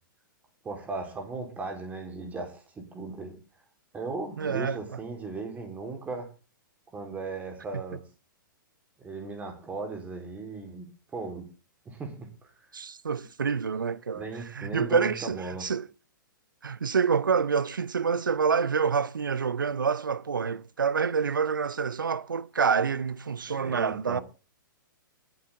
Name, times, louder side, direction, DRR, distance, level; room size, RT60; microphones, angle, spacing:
voice 1, 0.6-3.4 3.9-6.3 6.9-8.0 9.0-11.5 11.9-12.5 14.1-15.6 23.6-24.2, right 3 dB, 15° right, 3.6 m, -37 dB
voice 2, 4.4-4.8 7.7-7.8 12.7-15.9 16.6-24.2, right 6 dB, 70° right, 0.8 m, -27 dB
20.0 x 8.2 x 3.5 m
figure-of-eight pair, 110°, 11 cm